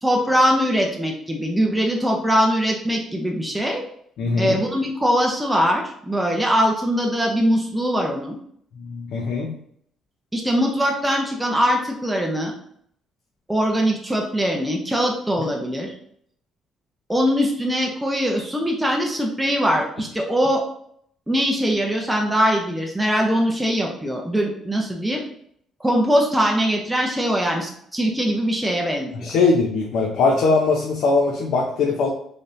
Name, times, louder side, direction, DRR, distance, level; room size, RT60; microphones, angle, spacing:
voice 1, 0.0-3.8 4.4-8.4 10.3-12.5 13.5-15.9 17.1-20.6 21.3-25.2 25.8-29.3, equal, 5° right, 0 dB, 0.6 m, -22 dB
voice 2, 4.2-4.5 8.8-9.5 29.1-32.1, left 3 dB, 70° left, -1 dB, 0.6 m, -21 dB
4.0 x 3.3 x 2.5 m, 0.67 s
cardioid pair, 115°, 0 cm